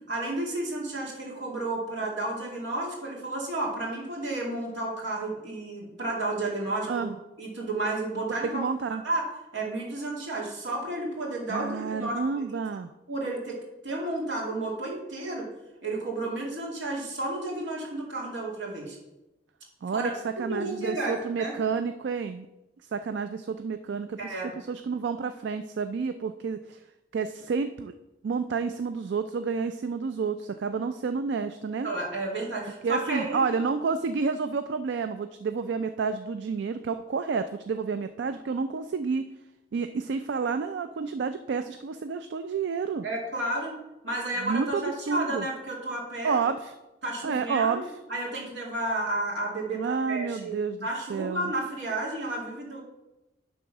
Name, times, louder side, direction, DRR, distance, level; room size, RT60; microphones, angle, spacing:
voice 1, 0.1-7.0 7.4-8.6 9.0-9.3 9.5-12.4 13.1-15.4 15.8-19.0 19.9-20.2 20.5-21.1 21.4-21.6 24.2-24.5 31.8-33.5 43.0-43.8 44.0-46.4 47.0-52.8, right 2 dB, 90° right, -2 dB, 2.3 m, -32 dB
voice 2, 8.5-9.0 11.5-12.9 19.8-20.1 20.4-22.5 22.9-26.8 27.1-27.9 28.2-31.9 32.8-39.3 39.7-43.0 44.4-45.5 46.2-46.7 47.2-47.9 49.7-51.5, right 5 dB, 75° right, 9 dB, 0.3 m, -30 dB
10.0 x 3.6 x 5.9 m, 0.98 s
head